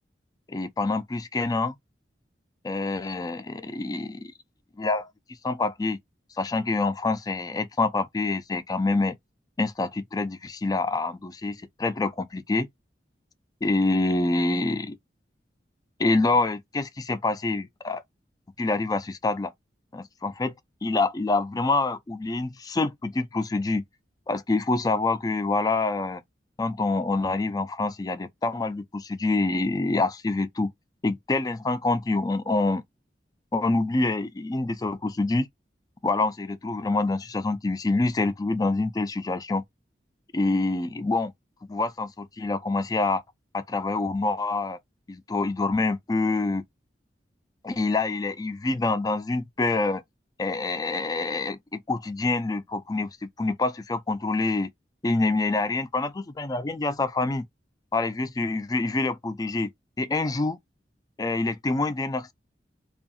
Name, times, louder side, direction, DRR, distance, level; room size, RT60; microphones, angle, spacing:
voice 1, 0.5-1.7 2.6-4.3 4.8-5.1 5.4-6.0 6.4-9.2 9.6-12.7 13.6-15.0 16.0-18.0 18.6-19.5 19.9-20.5 20.8-23.8 24.3-26.2 26.6-30.7 31.0-32.8 33.5-35.5 36.0-39.6 40.3-41.3 41.7-43.2 43.5-44.8 45.1-46.6 47.6-50.0 50.4-54.7 55.0-57.5 57.9-59.7 60.0-60.6 61.2-62.3, left 3 dB, 20° left, 0.3 m, -26 dB
2.7 x 2.4 x 2.6 m
head